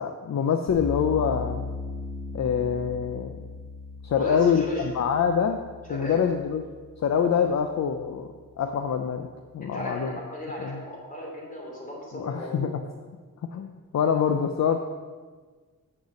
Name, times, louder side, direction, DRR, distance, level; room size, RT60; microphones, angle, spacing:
voice 1, 0.0-1.6 2.3-3.4 4.0-5.6 5.9-6.6 7.0-8.3 8.6-9.3 9.5-10.1 10.6-10.8 12.1-12.9 13.5-14.8, left 7 dB, 55° left, 6 dB, 0.5 m, -25 dB
sound 1, 0.7-7.8, left 3 dB, 85° left, 3.1 m, -38 dB
voice 2, 4.2-4.9 5.9-6.3 7.2-7.4 9.6-12.7, left 1 dB, 25° left, -2 dB, 2.7 m, -35 dB
6.7 x 6.4 x 7.1 m, 1.5 s
wide cardioid pair, 160°, 34 cm